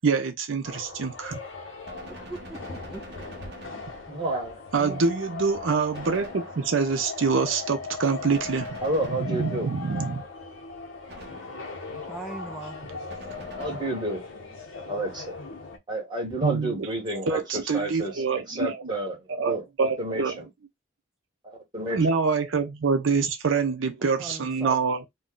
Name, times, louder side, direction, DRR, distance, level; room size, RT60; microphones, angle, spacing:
voice 1, 0.0-1.4 4.7-8.8 9.2-10.2 16.4-16.9 17.3-18.9 19.3-20.4 21.9-25.1, right 5 dB, 85° right, 0.6 m, -26 dB
sound 1, 0.6-15.8, left 4 dB, 80° left, 0.8 m, -39 dB
Gunshot gunfire, 1.8-4.4 5.9-7.0 8.3-9.8 11.1-11.9 13.1-14.2, equal, 55° right, 0.9 m, -46 dB
voice 2, 2.3-3.0 4.8-5.0 12.1-12.8 24.0-24.8, right 2 dB, ahead, 0.4 m, -39 dB
voice 3, 4.1-4.6 8.8-9.7 13.6-14.2 14.9-15.4 15.9-17.4 17.7-20.5 21.4-22.0, right 1 dB, 25° right, 1.4 m, -30 dB
2.6 x 2.2 x 3.7 m
head